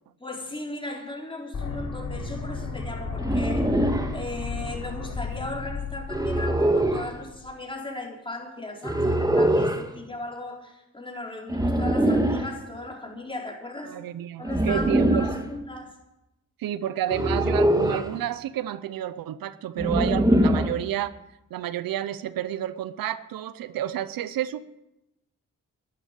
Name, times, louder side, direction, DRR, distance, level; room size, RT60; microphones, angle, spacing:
voice 1, 0.2-3.8 4.1-14.0 14.4-15.9, left 2 dB, 15° left, 0 dB, 4.4 m, -37 dB
sound 1, 1.5-7.5, left 4 dB, 60° left, 6.5 m, -34 dB
sound 2, 3.2-4.1 6.1-7.1 8.8-9.8 11.5-12.5 14.4-15.4 17.1-18.1 19.8-20.8, right 1 dB, 10° right, 1.7 m, -23 dB
voice 2, 13.9-15.2 16.6-21.2 21.5-24.6, right 11 dB, 85° right, 16 dB, 0.6 m, -30 dB
11.5 x 11.5 x 8.5 m, 0.93 s
cardioid pair, 60°, 34 cm